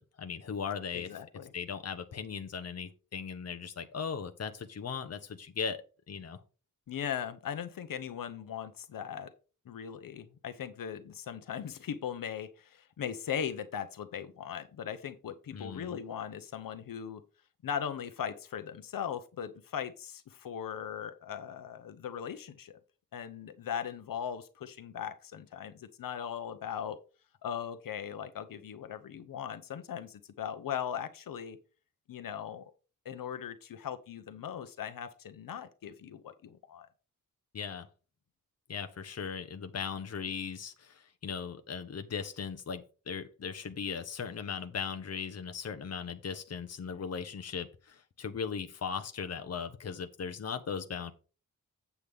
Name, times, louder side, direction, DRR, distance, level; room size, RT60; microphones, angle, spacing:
voice 1, 0.0-1.1 1.5-6.4 15.5-16.0 37.5-37.9 38.7-51.1, left 6 dB, 50° left, 1.0 m, -38 dB
voice 2, 0.9-1.5 6.9-9.3 9.7-17.2 17.6-22.8 23.1-27.0 27.4-31.6 32.1-32.7 33.0-36.9, left 8 dB, 80° left, 0.9 m, -39 dB
8.4 x 7.8 x 3.6 m
wide cardioid pair, 140°, 33 cm